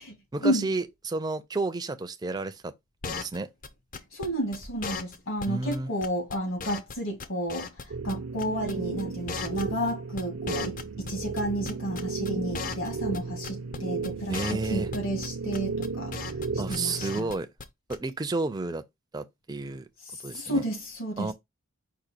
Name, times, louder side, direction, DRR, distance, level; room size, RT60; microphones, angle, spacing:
voice 1, 0.3-2.7 3.1-3.5 5.5-5.9 14.3-14.9 16.6-17.5 17.9-18.8 19.1-19.9 20.2-20.6 21.2-21.3, right 3 dB, 20° right, 0.4 m, -31 dB
sound 1, 3.0-3.4 3.6-3.7 3.9-4.3 4.5-4.6 4.8-5.2 5.4-5.5 5.7-5.8 6.0-6.9 7.2-8.1 8.4-8.7 9.0-11.1 11.4-12.9 13.1-13.2 13.4-13.8 14.0-14.1 14.3-14.7 14.9-15.3 15.5-16.5 16.7-17.3 17.6-17.7 17.9-18.0, left 5 dB, 40° left, 0.5 m, -36 dB
voice 2, 4.1-16.1 16.7-17.3 20.0-21.3, equal, 70° left, 2.2 m, -31 dB
sound 2, 7.9-17.2, right 4 dB, 70° right, 0.5 m, -34 dB
5.1 x 2.4 x 4.4 m
head